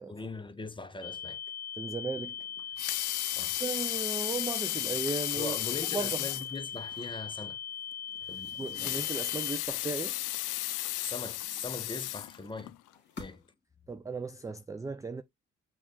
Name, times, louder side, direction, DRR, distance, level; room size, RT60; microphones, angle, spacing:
voice 1, 0.1-1.4 3.4-3.6 5.4-7.6 8.3-8.9 11.0-12.7 13.2-13.4, left 3 dB, 15° left, 0.7 m, -41 dB
sound 1, 1.0-9.6, left 8 dB, 55° left, 1.0 m, -40 dB
voice 2, 1.8-2.4 3.6-5.5 5.9-6.3 8.6-10.2 13.9-15.2, right 4 dB, 10° right, 0.3 m, -36 dB
Water tap faucet / Sink (filling or washing) / Liquid, 2.6-6.5 7.0-7.1 7.4-7.5 8.6-12.7 13.3-13.4, left 17 dB, 85° left, 0.5 m, -34 dB
sound 2, 5.5-7.2 8.1-9.9 10.6-12.2 12.8-13.6, left 3 dB, 35° left, 2.0 m, -54 dB
6.0 x 2.4 x 3.6 m
cardioid pair, 90°, 30 cm